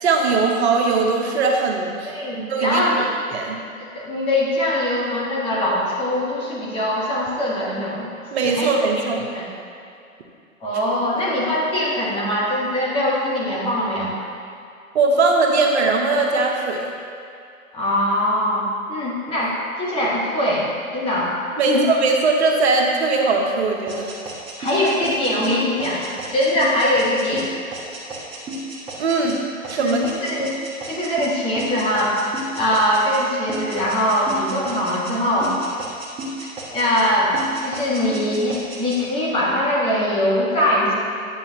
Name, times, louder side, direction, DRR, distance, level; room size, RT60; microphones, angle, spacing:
voice 1, 0.0-2.8 3.3-3.6 8.3-9.3 14.9-16.9 21.6-24.1 29.0-30.1, right 3 dB, 50° right, 1 dB, 0.9 m, -20 dB
voice 2, 2.0-3.1 3.9-8.1 8.4-8.7 9.2-9.4 10.6-14.1 17.7-20.7 20.9-21.3 21.7-21.9 24.6-27.5 29.8-30.5 30.9-32.1 32.6-35.5 36.7-37.3 37.6-40.9, left 1 dB, 15° left, -6 dB, 1.3 m, -22 dB
sound 1, 23.9-33.2 33.5-35.1 35.4-37.1 37.3-39.0, right 1 dB, 15° right, 1.1 m, -33 dB
9.7 x 7.1 x 2.8 m, 2.5 s
hypercardioid pair, 135°, 42 cm